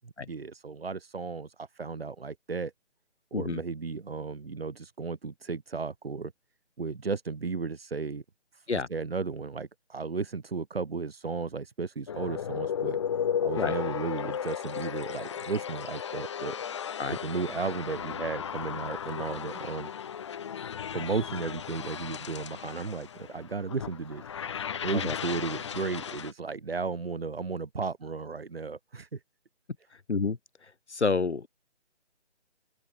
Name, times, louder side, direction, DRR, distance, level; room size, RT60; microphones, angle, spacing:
voice 1, 0.0-2.7 3.3-6.3 6.8-8.2 8.5-13.0 13.4-16.6 17.1-19.9 20.9-24.4 24.7-29.2, right 4 dB, 60° right, 7.6 m, -34 dB
sound 1, 12.1-26.3, left 8 dB, 25° left, 2.6 m, -35 dB
voice 2, 30.1-31.5, left 4 dB, 75° left, 3.0 m, -29 dB
open air
hypercardioid pair, 170°, 34 cm